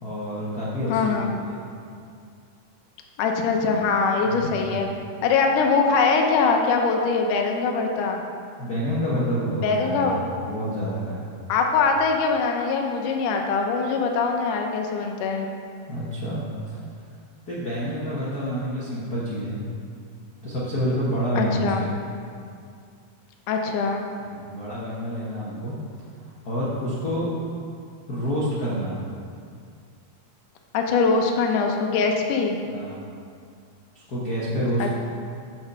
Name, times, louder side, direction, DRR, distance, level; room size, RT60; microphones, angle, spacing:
voice 1, 0.0-1.6 4.2-4.8 8.6-11.3 15.9-16.8 17.5-19.6 20.4-21.9 24.3-25.8 26.4-27.3 28.1-29.0 32.6-33.0 33.9-34.9, equal, 85° left, -8 dB, 0.8 m, -28 dB
voice 2, 0.9-1.4 3.2-4.9 5.2-8.2 9.6-10.2 11.5-15.5 21.4-21.9 23.5-24.1 30.7-32.6 34.8-34.9, left 4 dB, 70° left, 2 dB, 2.1 m, -22 dB
10.5 x 4.6 x 6.9 m, 2.3 s
omnidirectional pair, 4.3 m